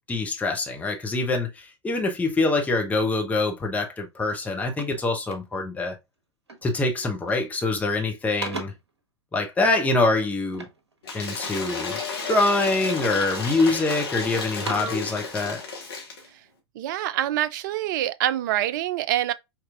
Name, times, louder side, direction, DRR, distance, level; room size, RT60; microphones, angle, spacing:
voice 1, 0.1-6.0 6.6-8.7 9.3-10.6 11.1-12.0 12.2-15.6, left 2 dB, 10° left, 1.0 m, -25 dB
sound 1, 3.8-4.0 4.3-5.8 6.5-6.8 7.1-7.6 8.0-9.0 10.5-11.7 12.2-12.9 13.4-14.0 14.4-15.1, right 3 dB, 70° right, 1.1 m, -40 dB
Cheering / Applause / Crowd, 11.0-16.3, left 4 dB, 60° left, 1.4 m, -32 dB
voice 2, 16.8-19.3, right 13 dB, 45° right, 0.4 m, -25 dB
5.2 x 3.0 x 2.5 m
figure-of-eight pair, 90°, 14 cm